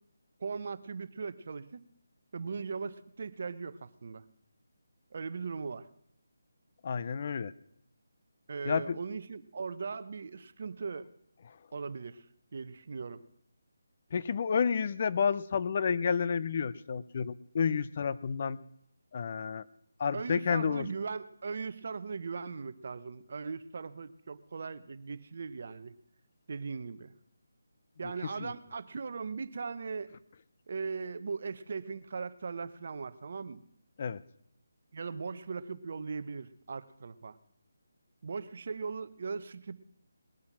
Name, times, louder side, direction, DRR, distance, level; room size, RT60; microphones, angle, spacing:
voice 1, 0.4-1.8 2.3-4.2 5.1-5.9 8.5-11.1 11.7-12.2 12.5-13.2 20.1-26.0 26.5-27.1 28.0-30.1 30.7-33.6 34.9-37.4 38.2-39.8, right 5 dB, 50° right, 14 dB, 0.8 m, -39 dB
voice 2, 6.8-7.5 8.7-9.0 14.1-18.6 19.1-19.6 20.0-20.9 28.4-28.5 34.0-34.2, left 6 dB, 40° left, 16 dB, 0.5 m, -30 dB
20.0 x 8.6 x 6.0 m, 0.71 s
figure-of-eight pair, 165°, 0 cm